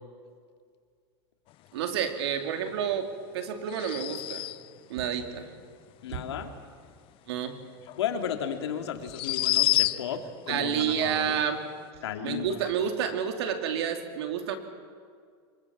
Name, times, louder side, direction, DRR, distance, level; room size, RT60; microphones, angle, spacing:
voice 1, 1.7-4.5 4.9-5.5 6.1-6.2 7.3-7.6 10.5-11.7 12.2-14.6, right 8 dB, 80° right, 6 dB, 2.8 m, -29 dB
sound 1, 3.7-4.8 7.9-8.0 9.0-10.3, left 17 dB, 40° left, 0.6 m, -27 dB
voice 2, 6.0-6.5 8.0-11.4 12.0-12.7, left 8 dB, 90° left, 5 dB, 2.5 m, -34 dB
25.0 x 22.5 x 7.2 m, 2.1 s
supercardioid pair, 130°, 14 cm